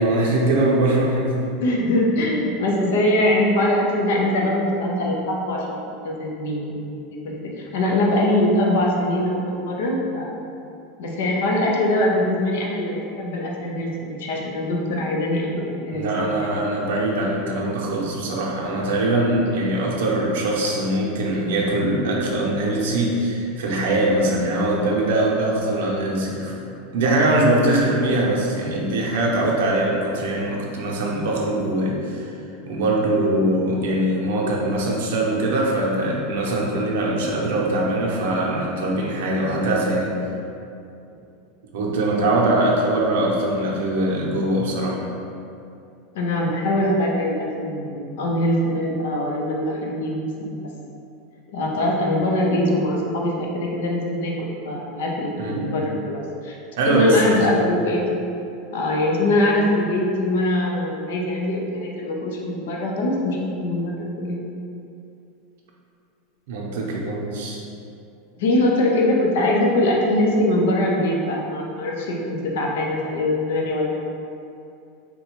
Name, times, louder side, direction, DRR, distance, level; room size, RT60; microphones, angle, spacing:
voice 1, 0.0-1.4 15.9-26.6 26.9-32.2 32.6-40.1 41.7-45.0 55.4-55.8 56.8-57.6 66.5-67.6, right 1 dB, 75° right, -3 dB, 0.6 m, -22 dB
voice 2, 1.6-10.4 11.0-16.0 46.1-50.7 51.5-56.6 56.9-58.0 58.7-64.4 68.4-74.2, left 1 dB, 75° left, -1 dB, 0.6 m, -22 dB
3.7 x 2.2 x 3.0 m, 2.6 s
supercardioid pair, 160°, 0 cm